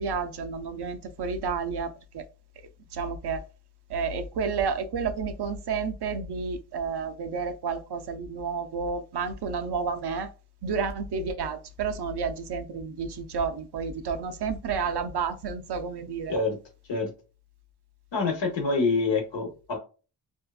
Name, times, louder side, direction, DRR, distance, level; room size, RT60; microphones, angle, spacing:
voice 1, 0.0-2.3 2.9-3.4 3.9-10.3 10.6-16.4, right 5 dB, 65° right, 0.5 m, -31 dB
voice 2, 18.1-19.8, left 3 dB, 80° left, 1.0 m, -26 dB
2.7 x 2.4 x 2.3 m
wide cardioid pair, 70°, 43 cm